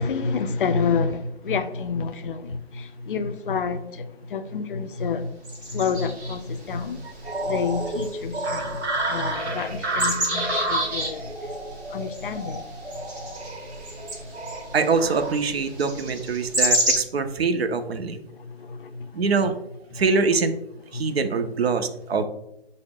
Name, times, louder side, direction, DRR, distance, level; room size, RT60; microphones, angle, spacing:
voice 1, 0.0-7.0 7.4-8.8 9.1-11.5 11.9-12.6 18.4-19.3 20.9-21.0, left 5 dB, 55° left, 0.4 m, -29 dB
sound 1, 5.4-17.0, right 1 dB, 20° right, 0.5 m, -31 dB
voice 2, 7.0-7.4 14.7-18.2 19.1-19.6 19.9-20.6 20.9-22.2, right 4 dB, 65° right, 0.5 m, -24 dB
sound 2, 7.2-15.4, right 1 dB, 85° right, 1.0 m, -30 dB
5.4 x 2.1 x 3.6 m
figure-of-eight pair, 135°, 33 cm